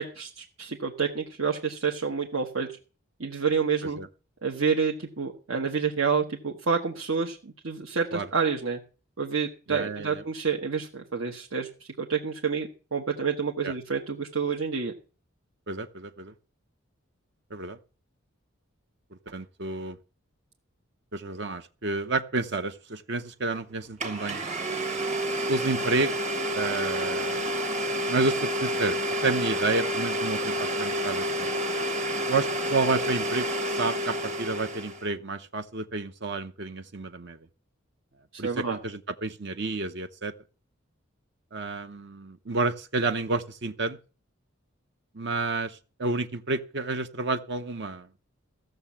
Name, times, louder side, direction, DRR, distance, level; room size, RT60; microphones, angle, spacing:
voice 1, 0.0-2.7 3.2-4.0 4.4-8.8 9.2-14.9 38.3-38.8, right 5 dB, 70° right, 1.3 m, -28 dB
voice 2, 9.7-10.2 13.6-13.7 15.7-16.3 17.5-17.8 19.3-20.0 21.1-24.4 25.5-26.1 26.5-27.4 28.1-31.5 32.3-37.4 38.4-40.3 41.5-44.0 45.1-48.1, right 3 dB, 55° right, 0.8 m, -30 dB
Domestic sounds home sounds, 23.5-23.6 24.0-35.1, equal, 35° right, 1.5 m, -29 dB
15.0 x 6.6 x 7.3 m
head